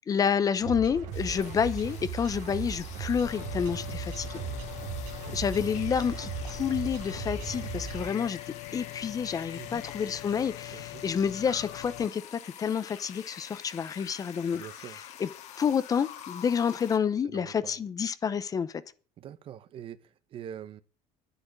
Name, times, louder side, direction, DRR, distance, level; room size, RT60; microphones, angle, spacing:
voice 1, 0.1-4.4 5.3-14.7 15.2-15.3 15.6-18.8, left 7 dB, 25° left, 0.8 m, -29 dB
sound 1, 0.6-8.1, right 6 dB, 75° right, 2.5 m, -37 dB
sound 2, 1.1-17.0, left 10 dB, 60° left, 2.3 m, -47 dB
sound 3, 3.2-12.1, left 20 dB, 85° left, 0.6 m, -43 dB
voice 2, 4.4-4.8 5.2-5.3 9.5-9.8 10.7-11.0 14.5-15.0 17.2-17.8 19.2-20.8, right 10 dB, 45° right, 1.0 m, -45 dB
10.5 x 10.0 x 8.7 m
cardioid pair, 145°, 13 cm